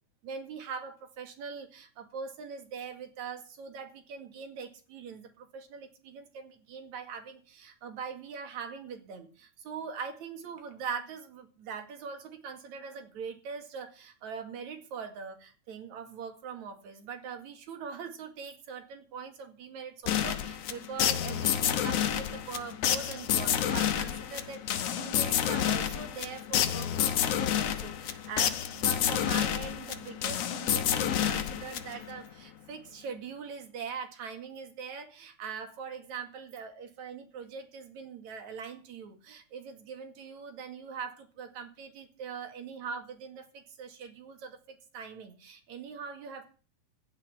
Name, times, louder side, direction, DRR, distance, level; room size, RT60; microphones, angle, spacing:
voice 1, 0.2-46.5, right 6 dB, 65° right, 6 dB, 3.3 m, -42 dB
sound 1, 20.1-32.2, left 10 dB, 60° left, 1.9 m, -29 dB
15.5 x 5.6 x 9.9 m, 0.38 s
omnidirectional pair, 3.6 m